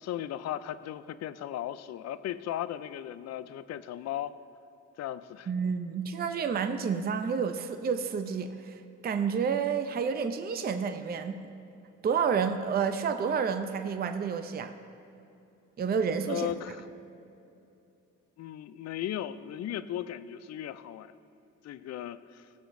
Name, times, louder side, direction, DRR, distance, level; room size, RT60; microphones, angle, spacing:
voice 1, 0.0-4.3 5.0-5.5 16.3-16.8 18.4-21.1 21.6-22.5, left 11 dB, 60° left, 14 dB, 0.4 m, -36 dB
voice 2, 5.5-11.5 12.0-14.7 15.8-16.5, right 6 dB, 30° right, 8 dB, 0.5 m, -30 dB
18.0 x 7.1 x 2.6 m, 2.8 s
cardioid pair, 90°, 30 cm